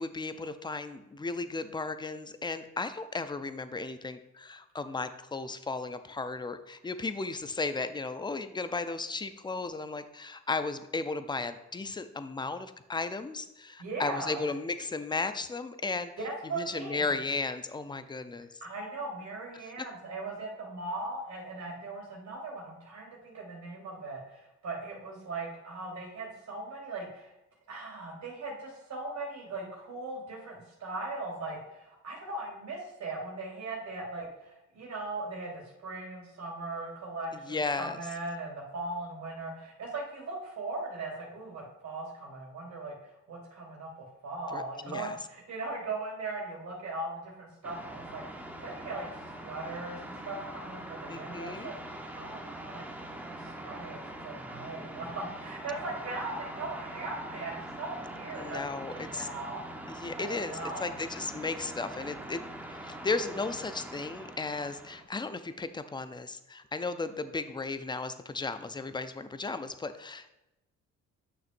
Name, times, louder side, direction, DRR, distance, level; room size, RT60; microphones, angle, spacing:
voice 1, 0.0-16.1 16.5-18.5 19.6-19.9 37.5-38.0 44.5-45.2 51.1-51.7 58.3-59.3 59.9-70.3, left 3 dB, 15° left, 11 dB, 0.5 m, -35 dB
voice 2, 13.8-14.4 16.2-17.2 18.6-27.3 27.7-43.0 43.3-59.6 60.2-60.9, right 2 dB, 65° right, -2 dB, 2.6 m, -39 dB
sound 1, 47.6-65.0, right 1 dB, 5° right, 0.9 m, -43 dB
9.0 x 6.2 x 2.6 m, 0.93 s
cardioid pair, 90°, 30 cm